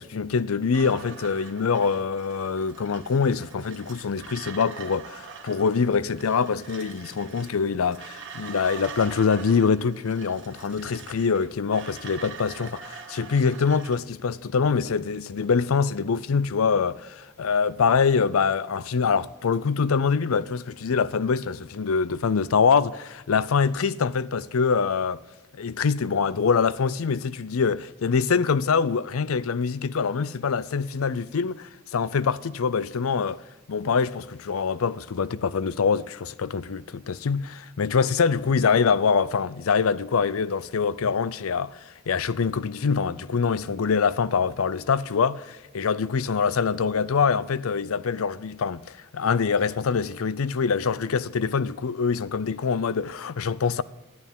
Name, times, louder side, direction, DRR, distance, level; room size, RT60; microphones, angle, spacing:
voice 1, 0.0-25.2 25.5-33.4 33.7-53.8, left 5 dB, 80° left, 0.5 m, -24 dB
sound 1, 0.7-14.0, right 6 dB, 60° right, 1.6 m, -43 dB
14.0 x 11.5 x 5.4 m
head